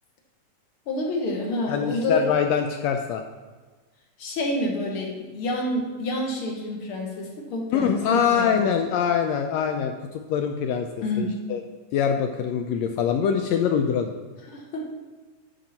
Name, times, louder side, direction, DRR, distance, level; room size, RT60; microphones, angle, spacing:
voice 1, 0.9-2.2 4.2-8.8 11.0-11.3 14.5-14.9, left 1 dB, 55° left, 1 dB, 1.8 m, -28 dB
voice 2, 1.7-3.2 7.7-10.9 11.2-11.6 11.9-14.1, left 7 dB, 80° left, 5 dB, 1.5 m, -24 dB
10.0 x 5.3 x 4.3 m, 1.3 s
omnidirectional pair, 3.5 m